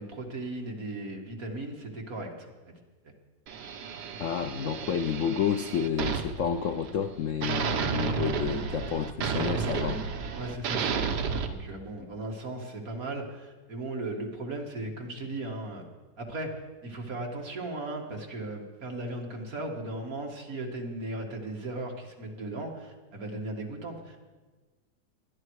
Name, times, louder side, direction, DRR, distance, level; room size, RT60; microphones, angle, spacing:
voice 1, 0.0-2.8 10.3-11.2 11.4-15.8 16.2-24.3, right 2 dB, 50° right, 1 dB, 2.3 m, -37 dB
sound 1, 3.5-7.1 7.4-11.5, right 6 dB, 65° right, 1.6 m, -32 dB
voice 2, 4.2-10.0, left 8 dB, 70° left, 8 dB, 0.7 m, -30 dB
20.5 x 11.5 x 4.8 m, 1.3 s
omnidirectional pair, 1.9 m